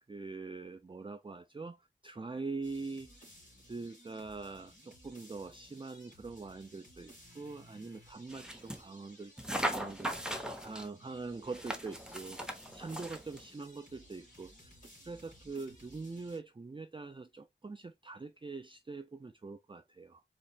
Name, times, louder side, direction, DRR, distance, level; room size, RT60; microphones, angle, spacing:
voice 1, 0.1-3.1 3.7-9.3 9.7-10.2 10.6-12.4 12.7-14.8 15.0-20.2, right 3 dB, 25° right, 0.4 m, -43 dB
sound 1, 2.6-16.4, equal, 45° left, 2.7 m, -58 dB
sound 2, 8.3-8.8 9.4-10.9 11.5-13.4, right 1 dB, 5° right, 0.8 m, -38 dB
4.3 x 2.9 x 2.3 m
wide cardioid pair, 65°, 18 cm